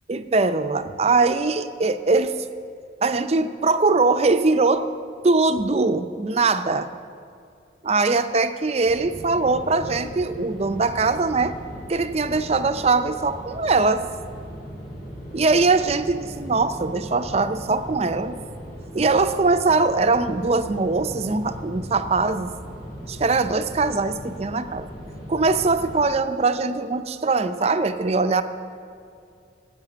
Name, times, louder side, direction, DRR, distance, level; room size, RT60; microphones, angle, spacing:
voice 1, 0.1-2.5 3.0-4.9 5.2-7.0 7.8-11.5 11.9-14.1 15.3-18.4 18.9-22.5 23.1-24.9 25.3-28.4, right 3 dB, 35° right, 10 dB, 0.5 m, -21 dB
sound 1, 8.8-26.1, equal, 50° left, 3.2 m, -38 dB
11.0 x 7.4 x 9.2 m, 2.4 s
head